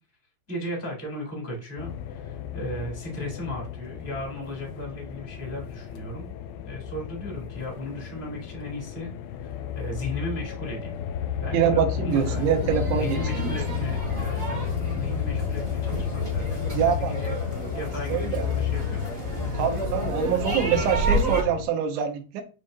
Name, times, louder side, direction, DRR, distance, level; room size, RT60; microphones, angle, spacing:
voice 1, 0.5-6.3 6.6-9.1 9.4-10.9 11.4-17.3 17.7-19.2, left 1 dB, 5° left, -3 dB, 2.7 m, -36 dB
sound 1, 1.8-21.6, left 8 dB, 90° left, 3.1 m, -32 dB
voice 2, 11.5-13.6 16.7-17.1 18.1-18.5 19.5-22.4, right 8 dB, 75° right, 4 dB, 3.4 m, -25 dB
sound 2, 12.1-21.4, right 2 dB, 10° right, 2.3 m, -31 dB
9.0 x 5.1 x 2.8 m, 0.34 s
omnidirectional pair, 5.4 m